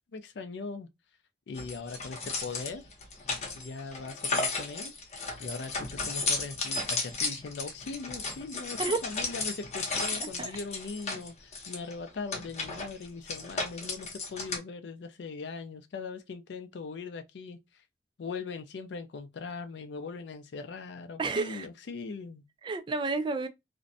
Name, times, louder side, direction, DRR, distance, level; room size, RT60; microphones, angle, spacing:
voice 1, 0.1-0.9 1.5-2.9 3.6-4.9 5.4-17.6 18.2-22.4, left 4 dB, 75° left, 0.4 m, -40 dB
sound 1, 1.6-14.6, left 3 dB, 40° left, 0.7 m, -34 dB
voice 2, 10.2-10.5 21.2-21.7 22.6-23.5, right 3 dB, 25° right, 0.3 m, -31 dB
2.5 x 2.1 x 2.5 m
head